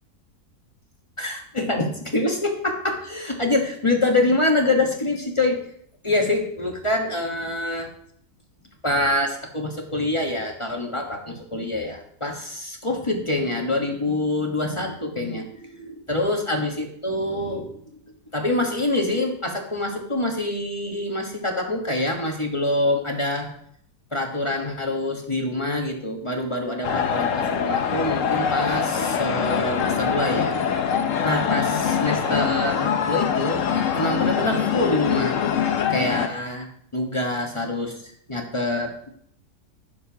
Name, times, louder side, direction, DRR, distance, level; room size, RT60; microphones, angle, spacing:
voice 1, 1.2-5.7 6.0-7.9 8.8-17.7 18.3-23.6 24.1-30.6 31.2-33.7 33.9-35.4 35.9-38.0 38.3-39.1, left 2 dB, 20° left, 1 dB, 1.2 m, -25 dB
sound 1, 26.8-36.3, left 7 dB, 60° left, 1.0 m, -23 dB
16.0 x 6.8 x 2.9 m, 0.66 s
omnidirectional pair, 1.7 m